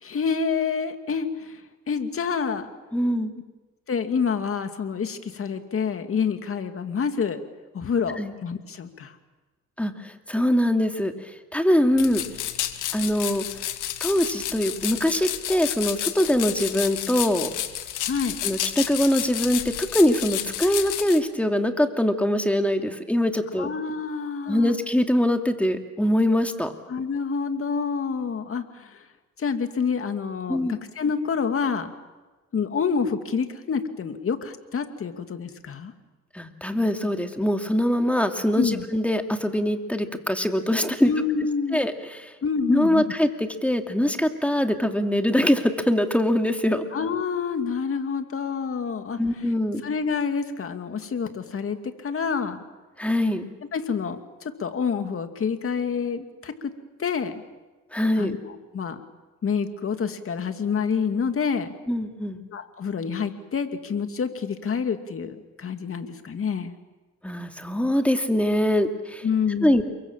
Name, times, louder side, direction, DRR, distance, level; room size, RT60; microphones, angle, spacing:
voice 1, 0.0-1.5 1.9-2.7 3.9-7.4 7.7-9.1 18.1-18.4 23.6-24.7 26.9-29.0 29.4-31.9 32.5-35.9 38.6-38.8 41.0-41.8 42.4-43.0 46.9-49.2 49.8-52.6 53.7-54.2 54.4-56.7 57.0-57.4 58.2-59.0 59.4-61.7 62.5-66.7 69.2-69.8, left 6 dB, 45° left, 7 dB, 2.4 m, -27 dB
voice 2, 2.9-3.3 8.2-8.3 9.8-11.1 11.5-12.2 12.9-13.4 14.0-17.5 18.4-23.7 24.5-26.7 30.5-30.8 36.3-41.1 41.7-42.3 42.7-46.9 49.2-49.8 53.0-53.5 57.9-58.3 61.9-62.4 67.2-69.2 69.6-69.8, left 1 dB, 5° left, 5 dB, 2.6 m, -23 dB
sound 1, 12.0-21.2, left 12 dB, 85° left, 1.9 m, -31 dB
28.5 x 23.5 x 7.4 m, 1.2 s
cardioid pair, 90°, 30 cm